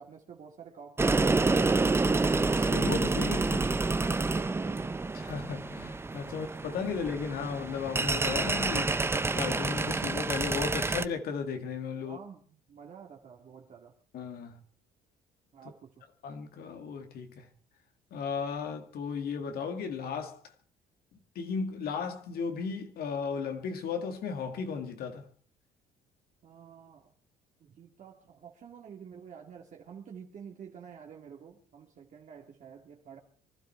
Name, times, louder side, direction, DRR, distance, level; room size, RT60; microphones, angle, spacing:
voice 1, 0.0-2.2 4.0-5.0 6.3-6.4 12.0-14.0 15.5-16.0 26.4-27.1 27.6-33.2, right 7 dB, 45° right, 2.3 m, -49 dB
sound 1, 1.0-11.1, right 3 dB, 15° right, 0.7 m, -28 dB
voice 2, 2.5-3.7 5.1-9.0 9.3-12.2 14.1-14.6 15.6-15.7 16.2-17.5 18.1-20.5 21.1-25.3, left 6 dB, 65° left, 2.1 m, -35 dB
24.5 x 12.0 x 4.6 m
cardioid pair, 110°, 17 cm